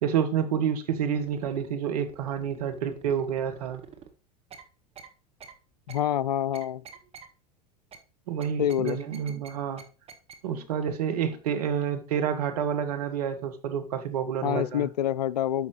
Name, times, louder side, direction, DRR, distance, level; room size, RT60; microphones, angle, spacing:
voice 1, 0.0-3.8 8.3-9.8 10.4-14.9, right 8 dB, 65° right, 1.5 m, -29 dB
sound 1, 1.0-1.7 2.1-4.1 4.5-4.6 5.0-5.1 5.4-5.5 5.9-6.0 6.5-7.3 7.9-8.0 8.4-9.5 9.8-9.9 10.1-10.3 10.8-10.9 11.3-11.4 11.8-11.9, right 7 dB, 30° right, 1.5 m, -47 dB
voice 2, 5.9-6.8 8.6-9.0 14.4-15.7, left 11 dB, 75° left, 0.4 m, -27 dB
9.6 x 6.1 x 3.2 m
figure-of-eight pair, 80°, 21 cm